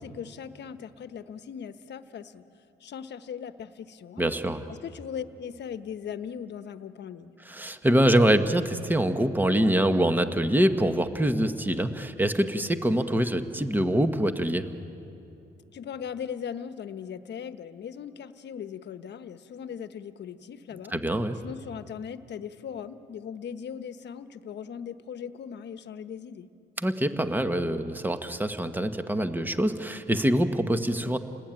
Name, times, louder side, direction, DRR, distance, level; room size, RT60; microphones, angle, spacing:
voice 1, 0.0-2.4 2.8-4.2 4.7-7.3 15.7-21.0 21.4-26.5, left 8 dB, 60° left, 11 dB, 1.2 m, -39 dB
voice 2, 4.2-4.7 7.5-14.7 20.9-21.4 26.8-31.2, right 1 dB, 10° right, 8 dB, 1.4 m, -24 dB
29.5 x 20.0 x 9.1 m, 2.8 s
cardioid pair, 90°, 20 cm